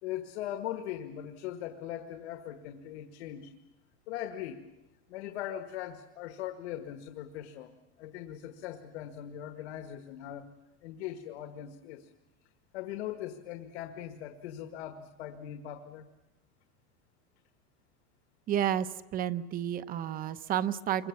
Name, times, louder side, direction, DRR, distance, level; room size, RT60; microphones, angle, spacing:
voice 1, 0.0-3.5 4.1-4.6 5.1-7.7 8.0-10.5 10.8-12.1 12.7-16.1, left 11 dB, 80° left, 7 dB, 1.7 m, -40 dB
voice 2, 18.5-21.1, right 10 dB, 25° right, 12 dB, 0.8 m, -31 dB
27.5 x 23.5 x 7.2 m, 1.0 s
supercardioid pair, 160°, 33 cm